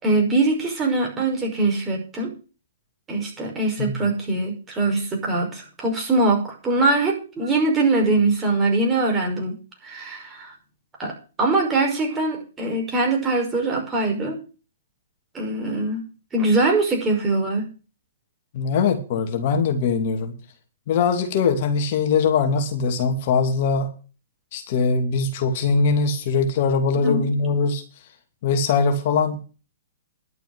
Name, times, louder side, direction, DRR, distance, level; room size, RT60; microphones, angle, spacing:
voice 1, 0.0-2.3 3.1-9.6 9.8-10.5 11.0-14.4 15.3-16.0 16.3-17.7 26.9-27.3, right 2 dB, 20° right, 1 dB, 5.4 m, -22 dB
voice 2, 18.5-20.3 20.9-23.9 24.5-27.8 28.4-29.4, left 5 dB, 50° left, 5 dB, 2.4 m, -21 dB
11.5 x 6.9 x 8.0 m, 0.35 s
hypercardioid pair, 130°, 0 cm